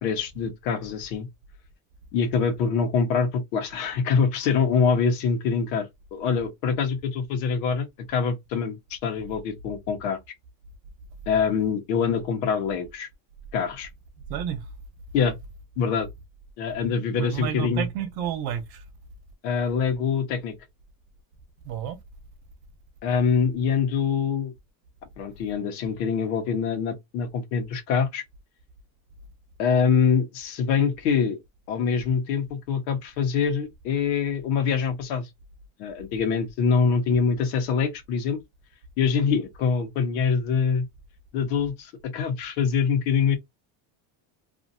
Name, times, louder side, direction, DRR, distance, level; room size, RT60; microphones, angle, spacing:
voice 1, 0.0-1.3 2.1-10.2 11.3-13.1 13.5-13.9 15.1-15.3 15.8-16.1 16.6-17.9 19.4-20.5 23.0-24.5 25.2-28.2 29.6-31.4 31.7-35.3 35.8-38.4 39.0-40.9 41.3-43.4, left 6 dB, 90° left, 1.2 m, -24 dB
voice 2, 14.3-14.6 17.1-18.8 21.6-22.0, right 9 dB, 50° right, 0.9 m, -30 dB
2.8 x 2.6 x 2.6 m
cardioid pair, 145°, 49 cm